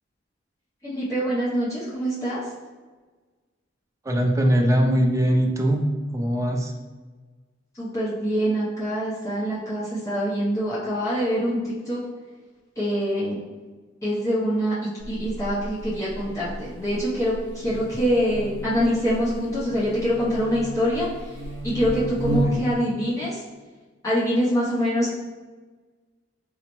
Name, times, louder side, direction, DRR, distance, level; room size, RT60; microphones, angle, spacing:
voice 1, 0.8-2.4 7.7-12.0 12.8-13.4 14.0-21.3 21.6-23.4 24.0-25.2, equal, 15° left, -10 dB, 0.7 m, -25 dB
voice 2, 4.0-5.9 6.1-6.7 22.5-22.6, equal, 15° right, 2 dB, 0.3 m, -21 dB
Buzz, 15.0-22.8, right 1 dB, 65° left, 1.1 m, -33 dB
3.9 x 2.0 x 3.0 m, 1.4 s
head